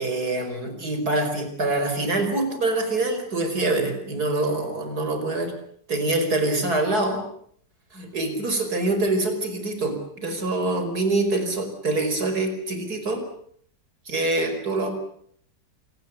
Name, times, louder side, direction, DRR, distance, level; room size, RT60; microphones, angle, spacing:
voice 1, 0.0-5.5 5.9-7.2 7.9-13.2 14.1-14.9, right 2 dB, 55° right, 7 dB, 5.6 m, -25 dB
28.0 x 19.0 x 8.3 m, 0.64 s
omnidirectional pair, 1.9 m